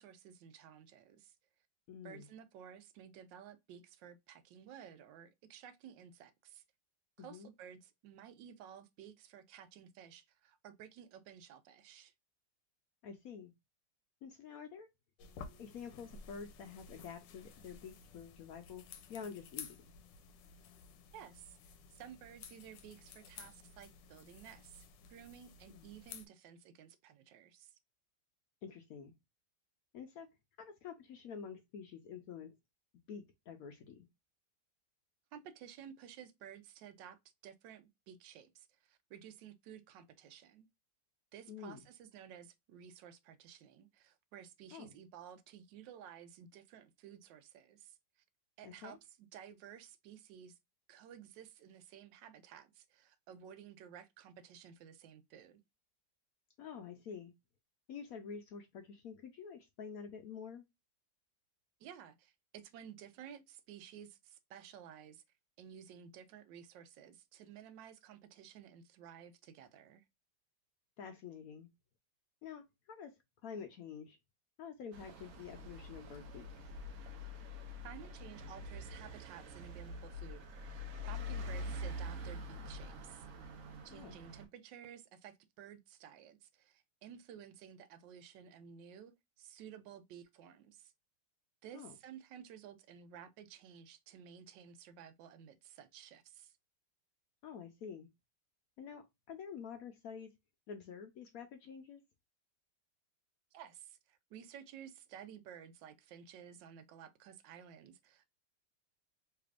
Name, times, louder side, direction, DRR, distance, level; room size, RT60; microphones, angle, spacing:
voice 1, 0.0-1.4 2.0-6.6 7.2-12.1 21.1-21.6 21.9-27.8 35.3-40.7 41.3-48.0 48.6-50.6 50.9-55.6 61.8-65.2 65.6-70.0 77.8-83.3 83.8-90.9 91.6-96.5 103.5-108.3, right 9 dB, 85° right, 1.3 m, -54 dB
voice 2, 1.9-2.3 7.2-7.5 13.0-13.5 14.2-14.9 15.6-18.8 19.1-19.7 25.7-25.9 28.6-29.1 29.9-30.3 30.6-32.5 33.1-34.1 41.5-41.8 44.7-45.0 48.6-49.0 56.6-57.3 57.9-60.6 71.0-71.7 72.4-73.1 73.4-74.2 74.6-76.5 83.9-84.2 91.7-91.9 97.4-98.1 98.8-100.3 100.7-102.0, left 6 dB, 70° left, 0.8 m, -48 dB
sound 1, 15.2-26.3, left 6 dB, 90° left, 1.3 m, -54 dB
sound 2, 74.9-84.5, left 1 dB, 60° right, 0.9 m, -45 dB
3.3 x 3.3 x 2.4 m
omnidirectional pair, 1.9 m